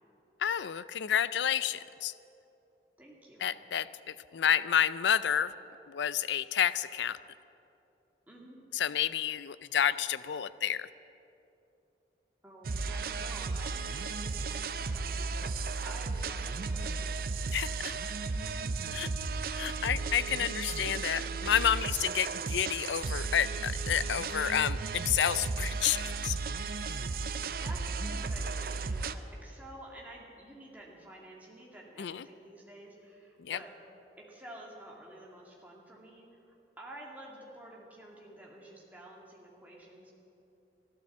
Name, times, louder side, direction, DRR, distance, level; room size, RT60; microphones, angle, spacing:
voice 1, 0.4-2.1 3.4-5.5 5.9-7.2 8.7-10.9 17.5-17.9 18.9-19.1 19.5-26.4 32.0-32.2 33.4-33.6, left 9 dB, 90° left, 16 dB, 0.4 m, -30 dB
voice 2, 3.0-3.5 8.3-8.6 12.4-17.0 27.5-33.7 34.2-40.1, right 1 dB, 10° right, -3 dB, 2.4 m, -50 dB
sound 1, 12.6-29.1, right 4 dB, 55° right, 0.5 m, -34 dB
14.5 x 12.5 x 7.3 m, 2.8 s
head